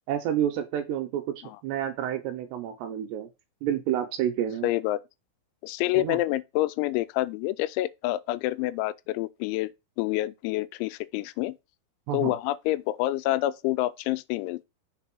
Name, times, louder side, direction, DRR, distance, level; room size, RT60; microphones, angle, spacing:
voice 1, 0.1-1.3 1.6-3.3 3.6-4.7 6.0-6.2 12.1-12.3, right 10 dB, 75° right, 2.7 m, -29 dB
voice 2, 4.6-5.0 5.6-9.7 10.0-11.6 12.1-14.7, left 16 dB, 85° left, 2.9 m, -27 dB
6.6 x 4.0 x 6.0 m
omnidirectional pair, 5.4 m